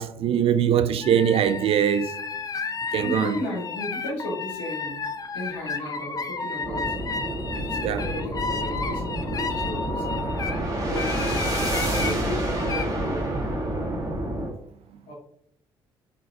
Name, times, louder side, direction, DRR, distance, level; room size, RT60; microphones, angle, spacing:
voice 1, 0.0-2.2 2.9-3.4 7.8-8.0, right 9 dB, 50° right, 0.4 m, -22 dB
sound 1, 1.0-10.6 11.0-12.2 12.6-12.8, left 4 dB, 30° left, 0.6 m, -32 dB
voice 2, 2.9-5.0 5.3-6.9 7.6-10.3 10.9-11.4 11.9-13.5 15.0-15.1, left 1 dB, 70° left, 1.6 m, -34 dB
sound 2, 6.6-14.5, right 1 dB, 30° right, 1.8 m, -28 dB
4.7 x 3.8 x 2.7 m
figure-of-eight pair, 45°, 13 cm